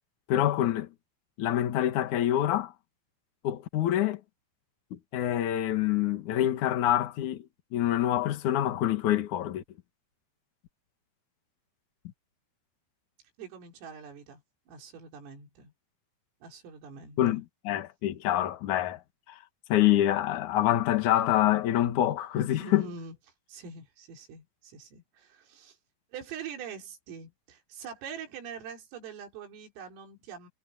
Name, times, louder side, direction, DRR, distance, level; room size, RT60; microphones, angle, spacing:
voice 1, 0.3-0.9 1.4-2.7 3.4-4.2 4.9-7.4 7.7-9.6 17.2-19.0 19.3-19.4 19.7-22.8, left 12 dB, 60° left, 2.2 m, -26 dB
voice 2, 13.4-14.4 14.7-15.7 16.4-17.4 22.6-23.2 23.5-25.8 26.1-30.5, right 6 dB, 80° right, 7.2 m, -44 dB
omnidirectional pair, 5.8 m